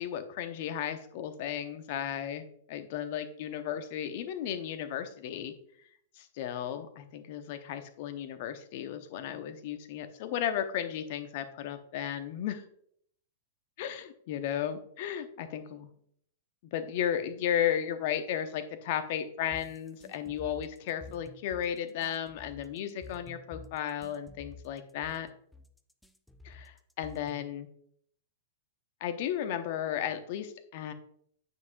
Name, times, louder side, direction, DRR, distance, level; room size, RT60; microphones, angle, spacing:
voice 1, 0.0-5.5 6.2-12.6 13.8-15.9 16.7-25.3 26.4-27.7 29.0-30.9, left 9 dB, 50° left, 10 dB, 0.8 m, -34 dB
sound 1, 19.5-27.5, left 2 dB, 5° left, 0.5 m, -50 dB
9.2 x 5.9 x 2.6 m, 0.66 s
figure-of-eight pair, 105°, 0 cm